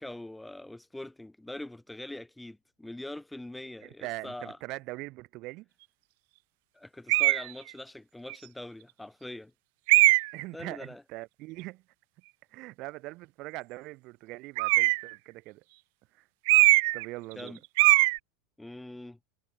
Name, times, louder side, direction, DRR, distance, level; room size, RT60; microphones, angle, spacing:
voice 1, 0.0-4.6 6.7-9.5 10.5-11.0 17.3-17.6 18.6-19.2, left 1 dB, 5° left, 1.5 m, -43 dB
voice 2, 3.8-5.7 10.3-11.8 12.5-15.6 16.1-16.2 16.9-17.6, right 21 dB, 45° right, 2.4 m, -41 dB
sound 1, 7.1-7.5 8.3-8.4 9.9-10.4 14.6-15.1 16.5-17.1 17.3-17.5 17.8-18.2, right 26 dB, 60° right, 0.3 m, -21 dB
supercardioid pair, 150°, 0 cm